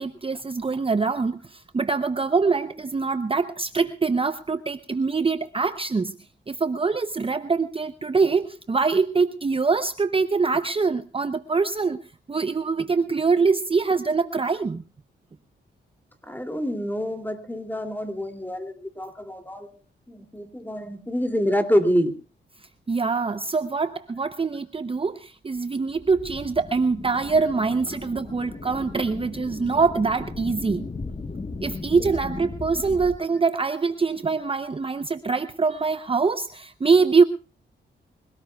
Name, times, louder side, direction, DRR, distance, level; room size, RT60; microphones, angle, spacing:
voice 1, 0.0-6.1 6.5-12.0 12.3-14.8 22.9-30.9 31.6-37.2, right 4 dB, 30° right, 0.7 m, -24 dB
voice 2, 16.3-19.7 20.1-22.1 32.0-32.1, equal, 10° left, 2.7 m, -26 dB
sound 1, 25.9-33.2, left 3 dB, 30° left, 1.3 m, -36 dB
26.0 x 17.5 x 2.3 m
cardioid pair, 80°, 19 cm